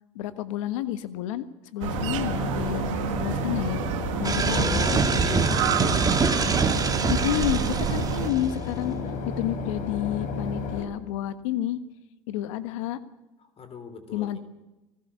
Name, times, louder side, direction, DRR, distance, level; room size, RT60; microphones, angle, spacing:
voice 1, 0.1-1.5 1.7-3.8 4.2-5.0 7.1-9.0 9.2-11.8 12.3-13.0 14.1-14.4, left 12 dB, 75° left, 12 dB, 1.4 m, -30 dB
sound 1, 1.8-8.3, right 11 dB, 75° right, 1.6 m, -30 dB
Boat Water vehicle / Engine, 1.9-10.8, left 4 dB, 55° left, 4.3 m, -33 dB
sound 2, 4.2-8.7, right 4 dB, 20° right, 2.3 m, -25 dB
voice 2, 4.4-6.3 13.6-14.4, left 5 dB, 35° left, 10 dB, 3.5 m, -37 dB
20.5 x 19.0 x 7.1 m, 1.0 s
hypercardioid pair, 85°, 17 cm